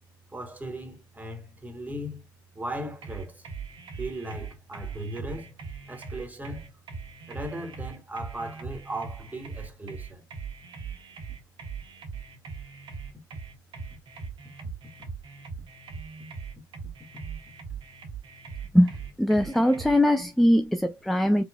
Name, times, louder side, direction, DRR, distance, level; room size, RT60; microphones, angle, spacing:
voice 1, 0.3-2.3 2.6-3.5 4.0-5.5 5.9-6.7 7.3-10.2, right 1 dB, 15° right, 1.8 m, -37 dB
sound 1, 3.0-20.0, right 5 dB, 50° right, 1.2 m, -40 dB
voice 2, 18.7-21.4, left 1 dB, ahead, 0.5 m, -21 dB
4.5 x 3.2 x 2.3 m
hypercardioid pair, 60°, 11 cm